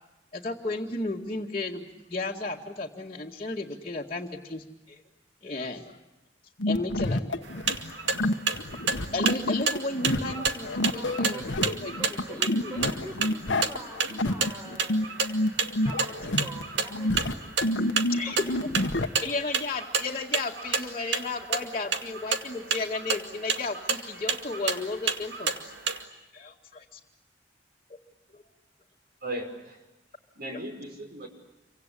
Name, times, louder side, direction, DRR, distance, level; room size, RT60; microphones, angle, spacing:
voice 1, 0.3-5.0 5.4-5.9 6.7-7.3 9.1-11.9 12.3-12.7 18.1-18.7 19.2-25.7 26.3-27.0 28.3-28.4, left 3 dB, 30° left, -4 dB, 2.0 m, -34 dB
sound 1, 6.6-19.1, left 1 dB, 80° left, 1.3 m, -29 dB
sound 2, 7.4-26.0, right 5 dB, 70° right, 2.2 m, -31 dB
voice 2, 10.9-17.4 17.8-18.4 19.2-19.3, right 2 dB, 20° right, -2 dB, 5.4 m, -44 dB
voice 3, 29.2-29.8 30.3-31.3, right 1 dB, 55° right, 4 dB, 5.2 m, -37 dB
28.5 x 25.0 x 8.4 m, 0.99 s
head